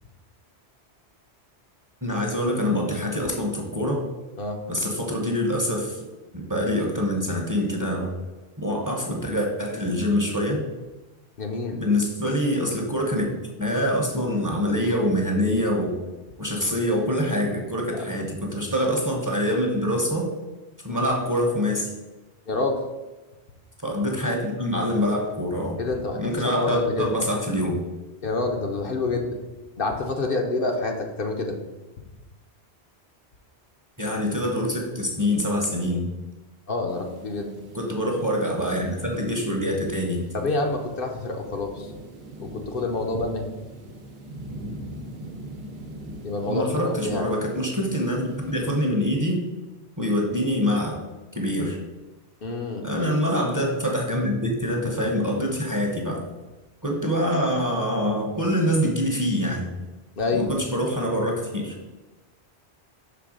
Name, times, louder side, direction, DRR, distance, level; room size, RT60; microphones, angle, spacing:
voice 1, 2.0-4.1 4.7-6.0 6.3-8.1 8.6-10.6 11.7-13.3 13.6-15.9 16.4-20.3 20.8-21.9 23.8-25.8 26.2-27.8 34.0-36.0 37.7-40.2 46.4-49.4 50.0-51.0 51.3-51.8 52.8-56.2 56.8-59.7 60.3-61.7, equal, 20° right, 0 dB, 0.8 m, -25 dB
voice 2, 11.4-11.8 17.9-18.0 20.9-21.0 22.5-22.8 25.8-27.1 28.2-29.4 29.8-31.6 36.7-37.5 40.3-41.9 42.4-43.5 46.2-47.3 52.4-52.9 60.2-60.5, left 3 dB, 60° left, 2 dB, 0.8 m, -27 dB
sound 1, 36.9-48.9, right 1 dB, 65° right, 1.0 m, -43 dB
6.0 x 3.4 x 4.9 m, 1.1 s
omnidirectional pair, 1.1 m